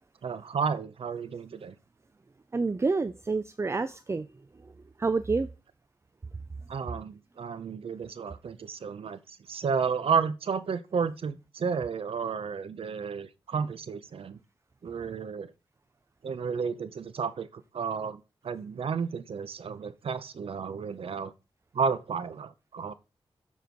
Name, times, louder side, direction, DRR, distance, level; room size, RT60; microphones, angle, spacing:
voice 1, 0.2-1.7 6.7-14.4 14.8-15.5 16.2-21.3 21.7-22.9, right 6 dB, 75° right, 0.7 m, -32 dB
voice 2, 2.5-4.3 5.0-5.5, right 4 dB, 30° right, 0.4 m, -28 dB
7.2 x 4.2 x 4.6 m
wide cardioid pair, 80°, 10 cm